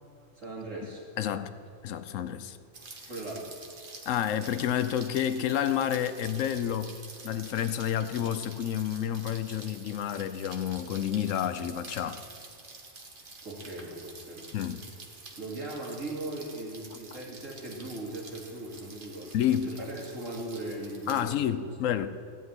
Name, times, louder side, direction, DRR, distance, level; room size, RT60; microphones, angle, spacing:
voice 1, 0.3-1.0 3.1-3.6 13.4-14.5 15.4-19.3 19.6-21.6, right 2 dB, 85° right, 3.1 m, -39 dB
voice 2, 1.2-1.5 1.8-2.6 4.1-6.9 7.2-12.2 14.5-14.8 19.3-19.8 21.1-22.1, left 10 dB, 85° left, 1.0 m, -29 dB
Rain, 2.7-21.4, right 3 dB, 45° right, 1.4 m, -48 dB
15.0 x 5.3 x 9.7 m
omnidirectional pair, 1.3 m